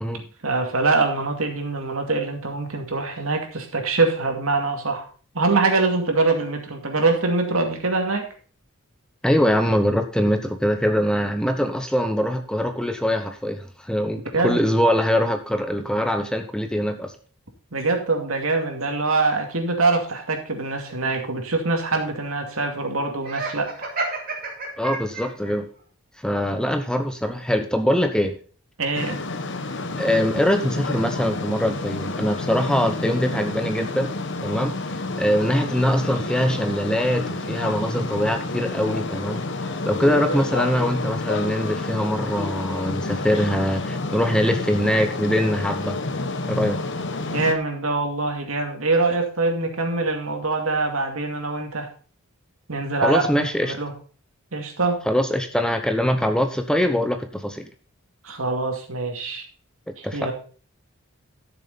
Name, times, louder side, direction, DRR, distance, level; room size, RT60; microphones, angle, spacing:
voice 1, 0.4-5.0 5.3-8.3 14.3-14.6 17.7-23.7 28.8-29.2 47.2-51.9 52.7-53.9 54.5-55.0 58.2-59.4 60.0-60.3, right 3 dB, 75° right, 3 dB, 2.4 m, -24 dB
voice 2, 9.2-17.1 24.8-25.7 26.2-28.4 30.0-34.1 34.4-34.7 35.2-46.0 46.5-46.8 53.0-53.7 55.1-57.6 60.0-60.3, equal, 5° left, 6 dB, 0.8 m, -23 dB
Laughter, 23.2-25.5, right 3 dB, 40° right, 2.6 m, -30 dB
sound 1, 28.9-47.5, left 3 dB, 55° left, 1.0 m, -29 dB
12.5 x 6.9 x 4.1 m, 0.40 s
head